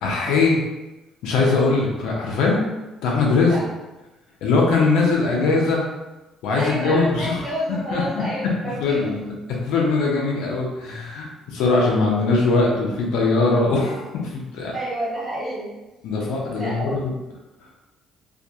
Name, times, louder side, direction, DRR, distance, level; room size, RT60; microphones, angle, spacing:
voice 1, 0.0-0.6 1.2-2.6 3.0-3.5 4.4-5.8 6.4-7.4 7.9-8.0 8.6-9.2 9.7-14.7 16.0-17.1, left 3 dB, 85° left, -2 dB, 0.6 m, -21 dB
voice 2, 6.5-9.4 14.7-15.8 16.5-17.0, equal, 25° right, -8 dB, 1.3 m, -29 dB
2.4 x 2.2 x 2.7 m, 1.1 s
cardioid pair, 105°, 0 cm